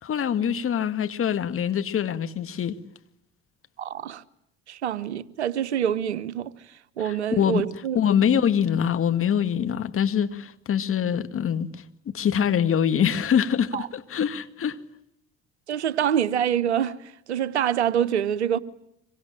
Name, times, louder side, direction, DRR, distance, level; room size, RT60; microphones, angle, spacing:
voice 1, 0.0-2.8 7.0-7.6 7.9-14.8, left 8 dB, 40° left, 2.1 m, -24 dB
voice 2, 3.8-4.2 4.7-6.5 7.0-8.0 13.7-13.9 15.7-18.6, right 9 dB, 85° right, 1.1 m, -26 dB
26.0 x 24.0 x 8.9 m
hypercardioid pair, 60°, 33 cm